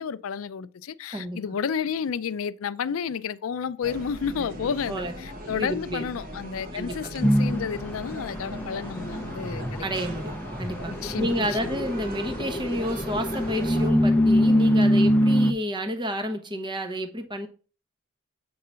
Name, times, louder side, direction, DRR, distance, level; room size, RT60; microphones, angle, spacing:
voice 1, 0.0-9.9 11.0-11.8, left 7 dB, 75° left, 0.4 m, -31 dB
voice 2, 1.1-1.4 4.9-5.1 5.5-6.0 6.7-7.3 9.8-17.5, equal, 20° right, 0.9 m, -30 dB
sound 1, 3.8-13.9, equal, 45° right, 1.4 m, -39 dB
sound 2, 7.2-15.5, equal, 10° left, 0.6 m, -24 dB
7.7 x 3.8 x 5.5 m
head